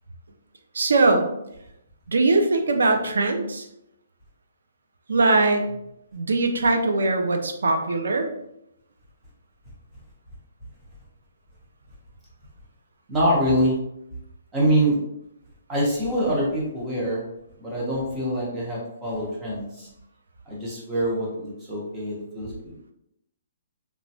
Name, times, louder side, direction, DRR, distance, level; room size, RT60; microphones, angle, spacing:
voice 1, 0.7-1.3 2.1-3.6 5.1-5.7 6.1-8.3, right 3 dB, 90° right, 5 dB, 0.4 m, -21 dB
voice 2, 13.1-13.8 14.5-15.0 15.7-17.3 17.6-19.9 20.5-22.7, equal, 10° right, -6 dB, 0.6 m, -25 dB
3.0 x 2.2 x 2.7 m, 0.80 s
hypercardioid pair, 180°, 0 cm